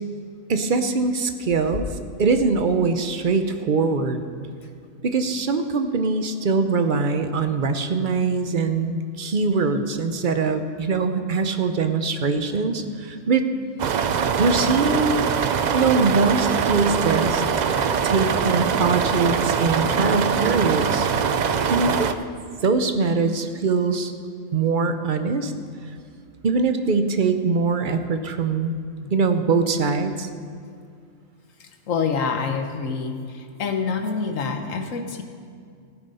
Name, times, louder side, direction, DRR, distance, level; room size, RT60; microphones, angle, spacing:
voice 1, 0.5-1.9 2.2-4.2 5.0-13.5 14.4-15.3 15.7-17.4 18.0-21.1 21.7-22.2 22.6-24.1 24.5-25.5 26.4-28.8 29.1-30.3, right 4 dB, 45° right, 8 dB, 0.8 m, -22 dB
sound 1, 13.8-22.1, right 6 dB, 70° right, 0.4 m, -23 dB
voice 2, 31.6-35.2, left 5 dB, 75° left, 5 dB, 1.4 m, -27 dB
15.0 x 9.9 x 5.5 m, 2.3 s
omnidirectional pair, 1.4 m